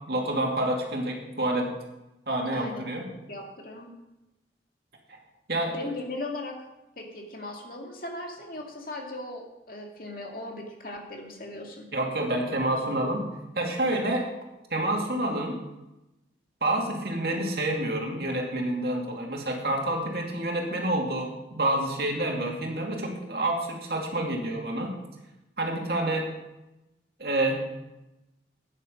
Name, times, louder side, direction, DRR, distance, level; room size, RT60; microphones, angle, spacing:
voice 1, 0.0-1.7 2.3-3.1 5.5-5.9 11.9-13.3 13.5-14.3 14.7-15.6 16.6-24.9 25.6-26.3 27.2-27.6, right 1 dB, 60° right, 0 dB, 2.5 m, -28 dB
voice 2, 2.5-2.9 3.3-3.9 5.7-6.6 7.0-11.8, left 2 dB, 50° left, 1 dB, 2.3 m, -38 dB
13.5 x 9.9 x 5.3 m, 0.96 s
head